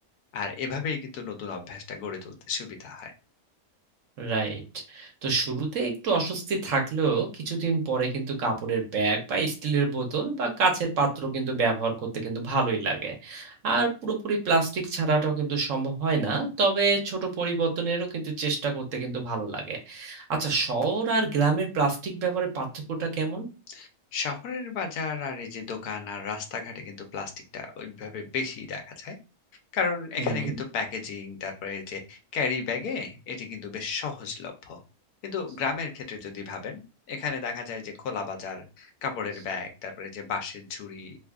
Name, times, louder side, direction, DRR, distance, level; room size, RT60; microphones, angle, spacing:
voice 1, 0.3-3.1 23.7-29.2 29.7-34.8 35.2-36.8 37.1-41.2, left 5 dB, 85° left, 4 dB, 1.2 m, -33 dB
voice 2, 4.2-4.6 4.9-23.5 30.2-30.5, right 4 dB, 60° right, 2 dB, 1.2 m, -27 dB
3.1 x 2.4 x 3.5 m, 0.31 s
omnidirectional pair, 1.6 m